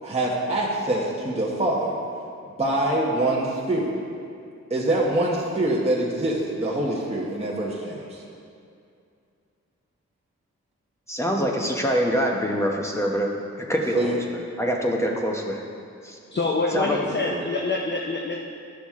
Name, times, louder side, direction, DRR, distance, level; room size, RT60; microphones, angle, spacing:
voice 1, 0.0-1.9 2.6-3.9 4.7-8.2 13.9-14.2 16.7-17.5, right 1 dB, 20° right, -5 dB, 1.1 m, -25 dB
voice 2, 11.1-13.3 13.6-15.6 16.0-16.2 16.7-17.0, equal, 10° left, 0 dB, 0.9 m, -25 dB
voice 3, 16.3-18.4, left 3 dB, 40° left, -1 dB, 0.6 m, -26 dB
11.5 x 6.0 x 3.6 m, 2.4 s
wide cardioid pair, 125°, 29 cm